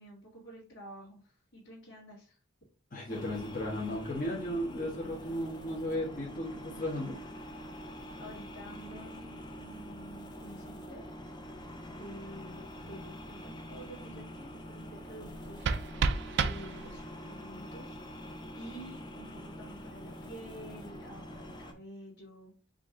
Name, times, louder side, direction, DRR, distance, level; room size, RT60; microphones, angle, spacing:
voice 1, 0.0-2.4 8.2-11.1 11.8-18.0 18.5-22.5, right 1 dB, 65° left, -7 dB, 1.6 m, -49 dB
voice 2, 2.9-7.2, left 1 dB, 40° left, -4 dB, 1.0 m, -35 dB
sound 1, 3.1-21.7, equal, 20° left, 0.6 m, -45 dB
sound 2, 15.2-17.2, right 5 dB, 55° right, 0.3 m, -32 dB
5.0 x 2.6 x 3.6 m, 0.38 s
head